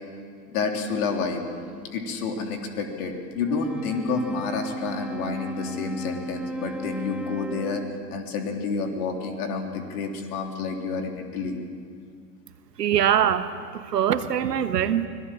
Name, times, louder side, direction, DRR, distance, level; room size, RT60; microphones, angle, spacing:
voice 1, 0.5-1.4 1.9-7.8 8.1-11.6, left 4 dB, 65° left, 3 dB, 3.5 m, -29 dB
Wind instrument woodwind instrument, 3.4-8.2, right 1 dB, ahead, 0.6 m, -35 dB
voice 2, 12.8-15.1, right 9 dB, 85° right, 10 dB, 1.4 m, -23 dB
25.0 x 18.0 x 7.6 m, 2.2 s
hypercardioid pair, 100°, 48 cm